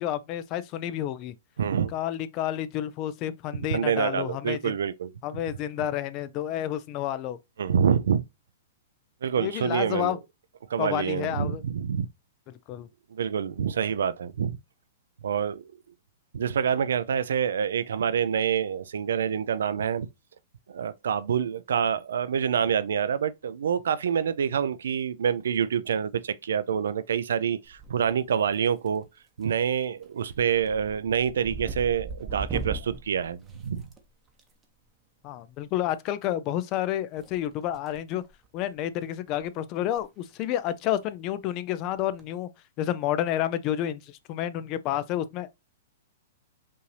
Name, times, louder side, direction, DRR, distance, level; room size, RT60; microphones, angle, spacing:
voice 1, 0.0-1.3 1.9-4.8 5.2-7.4 9.4-10.2 10.8-11.6 12.5-12.9 35.2-38.2 38.5-42.5 42.8-45.5, left 12 dB, 35° left, 0.4 m, -30 dB
voice 2, 1.6-1.9 3.5-5.4 7.6-8.2 9.2-10.1 10.7-12.1 13.1-14.6 15.2-15.6 16.3-20.1 20.7-29.0 29.4-33.9, right 7 dB, 85° right, 0.4 m, -27 dB
sound 1, 27.6-28.2 28.5-29.0 29.4-29.7 30.0-34.4 35.8-35.9 37.2-38.0 38.2-38.5 39.0-39.1 39.3-39.4 39.8-40.0 40.3-40.4 41.9-42.2, right 4 dB, 15° right, 0.8 m, -38 dB
5.4 x 2.6 x 3.2 m
hypercardioid pair, 150°, 0 cm